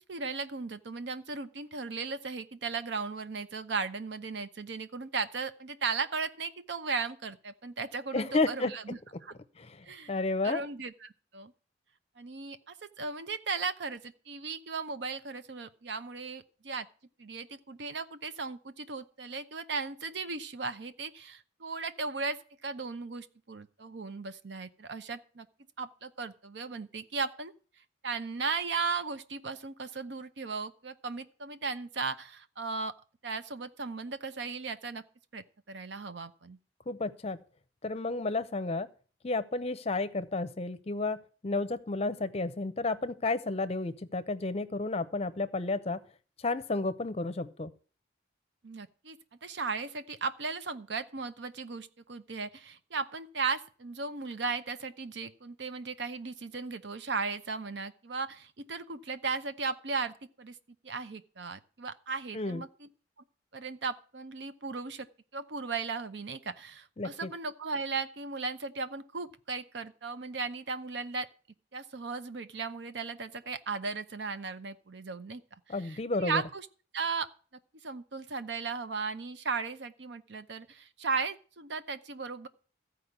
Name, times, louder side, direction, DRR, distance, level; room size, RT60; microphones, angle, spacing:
voice 1, 0.1-9.3 9.9-10.1 10.4-11.5 12.2-16.9 17.2-25.5 25.8-27.5 28.0-33.0 33.2-35.0 35.3-36.6 48.6-60.6 60.8-62.9 63.5-65.1 65.3-71.3 71.7-75.4 75.8-76.7 76.9-77.3 77.8-82.5, right 4 dB, 65° right, 11 dB, 0.7 m, -36 dB
voice 2, 8.1-8.7 9.6-10.6 36.9-37.4 37.8-38.9 39.2-46.0 46.4-47.7 62.3-62.6 67.0-67.3 75.7-76.4, left 3 dB, 35° left, 13 dB, 0.6 m, -32 dB
14.0 x 4.9 x 7.9 m, 0.41 s
head